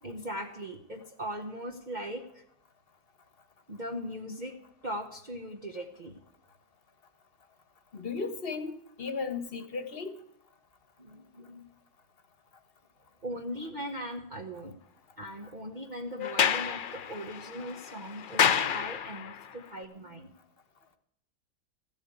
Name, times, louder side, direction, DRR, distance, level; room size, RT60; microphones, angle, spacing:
voice 1, 0.0-2.4 3.7-4.6 4.8-6.2 11.0-11.7 13.2-14.8 15.2-20.4, equal, 35° right, 1 dB, 1.1 m, -39 dB
voice 2, 7.9-10.1, left 4 dB, 40° left, 10 dB, 1.3 m, -35 dB
Sliding door, 16.2-19.5, left 8 dB, 70° left, 0.5 m, -29 dB
14.5 x 8.0 x 8.6 m, 0.74 s
omnidirectional pair, 1.6 m